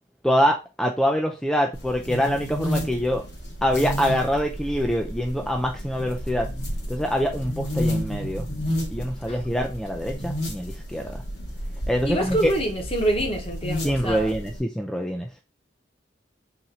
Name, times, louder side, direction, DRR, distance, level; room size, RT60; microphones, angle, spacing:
voice 1, 0.2-3.2 3.6-6.5 6.9-8.5 8.9-11.0 11.9-12.5 13.8-15.3, equal, 5° left, 0.3 m, -25 dB
sound 1, 1.7-14.6, equal, 70° left, 2.2 m, -31 dB
voice 2, 12.0-14.3, right 1 dB, 30° left, 1.0 m, -26 dB
4.1 x 2.6 x 4.2 m
head